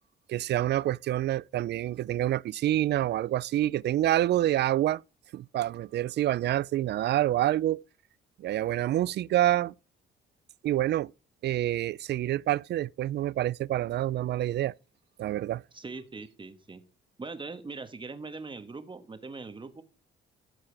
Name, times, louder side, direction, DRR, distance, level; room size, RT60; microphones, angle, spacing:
voice 1, 0.3-5.0 5.3-7.8 8.4-9.7 10.6-11.1 11.4-14.7 15.2-15.6, right 13 dB, 60° right, 0.4 m, -27 dB
voice 2, 15.7-16.8 17.2-19.8, right 3 dB, 25° right, 1.5 m, -41 dB
14.0 x 4.7 x 4.6 m
cardioid pair, 90°, 20 cm